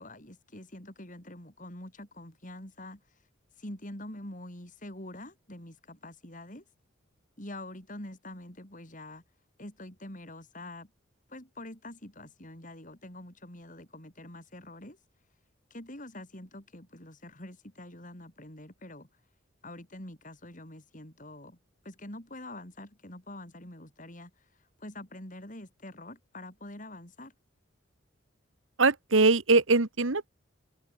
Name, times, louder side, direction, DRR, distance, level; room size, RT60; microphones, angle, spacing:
voice 1, 0.0-3.2 3.6-6.6 7.4-9.2 9.6-10.9 11.3-15.0 15.7-19.1 19.6-21.6 21.8-27.3, left 1 dB, 40° left, 5.7 m, -45 dB
voice 2, 28.8-30.3, right 3 dB, 75° right, 1.4 m, -22 dB
open air
head